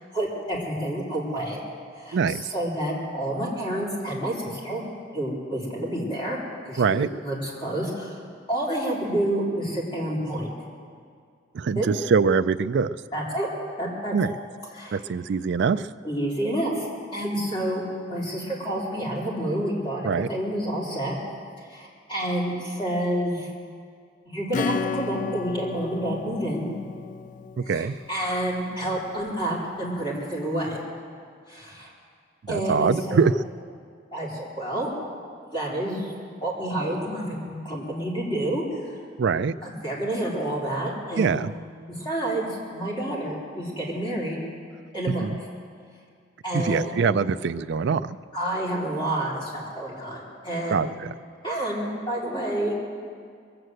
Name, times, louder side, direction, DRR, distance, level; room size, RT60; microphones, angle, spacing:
voice 1, 0.1-1.6 1.9-4.8 5.1-6.4 6.6-8.2 8.5-10.5 11.8-11.9 13.1-13.5 13.8-14.3 14.7-15.0 16.0-16.9 17.1-21.2 21.6-23.5 24.3-26.7 27.6-30.8 31.5-31.9 32.5-33.2 34.1-34.9 35.5-36.1 36.4-38.9 39.6-41.4 42.0-44.4 44.9-45.3 46.4-47.0 48.3-50.9 51.4-52.7, right 1 dB, 25° left, -5 dB, 3.9 m, -29 dB
voice 2, 2.1-2.4 6.8-7.1 11.5-13.0 14.1-14.3 14.9-15.9 20.0-20.3 27.6-28.0 32.4-33.3 39.2-39.5 41.2-41.5 45.2-45.4 46.5-48.2 50.7-51.1, right 5 dB, 65° right, 12 dB, 0.4 m, -23 dB
Acoustic guitar / Strum, 24.5-28.8, left 5 dB, 45° left, 0.3 m, -33 dB
22.0 x 7.9 x 7.8 m, 2.1 s
head